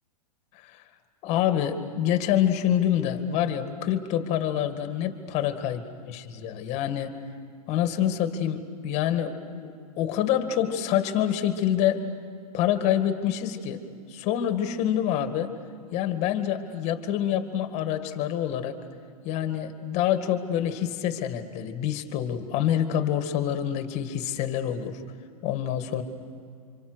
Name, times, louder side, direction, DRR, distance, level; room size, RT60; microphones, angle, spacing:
voice 1, 1.2-5.8 6.1-7.2 7.7-12.1 12.5-13.8 14.1-15.5 15.9-18.8 19.2-25.0 25.4-26.0, left 10 dB, 35° left, 8 dB, 2.1 m, -26 dB
29.0 x 26.0 x 6.4 m, 2.3 s
hypercardioid pair, 125°, 20 cm